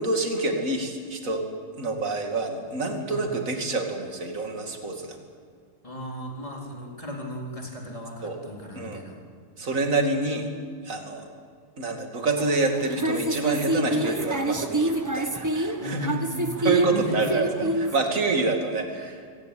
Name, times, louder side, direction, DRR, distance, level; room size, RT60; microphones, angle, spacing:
voice 1, 0.0-1.4 1.8-5.2 8.2-8.4 8.7-9.0 9.6-10.5 10.8-11.3 11.8-16.2 16.6-17.5 17.9-19.3, right 3 dB, 45° right, 4 dB, 2.9 m, -27 dB
voice 2, 5.8-9.2 15.8-17.3 17.7-17.8, left 1 dB, 15° left, -1 dB, 4.0 m, -35 dB
sound 1, 12.3-18.0, right 1 dB, 15° right, 0.7 m, -28 dB
24.5 x 18.5 x 8.5 m, 2.1 s
omnidirectional pair, 2.0 m